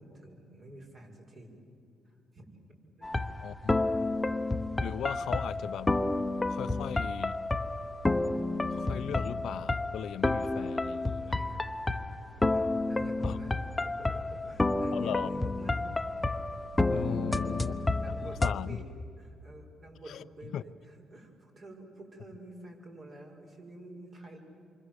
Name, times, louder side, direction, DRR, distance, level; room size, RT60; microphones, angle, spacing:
voice 1, 0.0-1.6 2.0-2.5 3.0-3.1 5.1-5.4 11.2-11.6 12.5-15.8 16.9-18.9 19.2-24.4, right 1 dB, 50° right, 6.5 m, -49 dB
sound 1, 3.0-18.5, left 2 dB, 15° left, 1.0 m, -30 dB
voice 2, 3.4-3.8 4.8-5.9 6.5-7.4 8.7-11.1 13.2-13.4 14.9-15.3 16.9-17.7 18.2-18.8 20.1-20.2 20.5-20.6, left 10 dB, 70° left, 0.7 m, -37 dB
28.0 x 25.0 x 8.2 m
cardioid pair, 90°, 0 cm